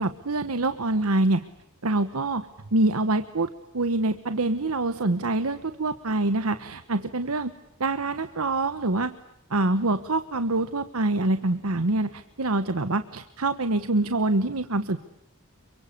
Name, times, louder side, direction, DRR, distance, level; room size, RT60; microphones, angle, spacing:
voice 1, 0.0-1.4 1.8-2.4 2.7-3.5 3.7-7.5 7.8-9.1 9.5-15.0, right 2 dB, 85° right, 11 dB, 1.2 m, -25 dB
28.5 x 24.5 x 8.5 m, 0.83 s
head